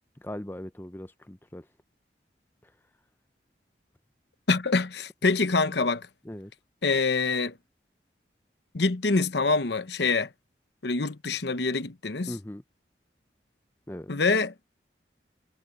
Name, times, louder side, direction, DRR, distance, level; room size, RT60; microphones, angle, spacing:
voice 1, 0.2-1.6 6.3-6.5 12.3-12.6 13.9-14.1, left 1 dB, 10° left, 0.6 m, -39 dB
voice 2, 4.5-6.1 6.8-7.6 8.7-10.3 10.8-12.3 14.1-14.5, left 3 dB, 75° left, 1.0 m, -25 dB
head